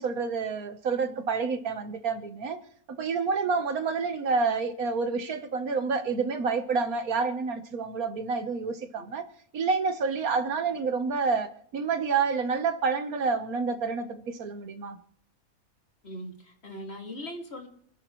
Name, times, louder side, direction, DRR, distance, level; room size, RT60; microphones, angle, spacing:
voice 1, 0.0-2.6 2.9-9.3 9.5-15.0, right 4 dB, 80° right, 1.7 m, -28 dB
voice 2, 16.0-17.7, equal, 45° left, 2.8 m, -40 dB
29.0 x 10.5 x 3.2 m
omnidirectional pair, 1.5 m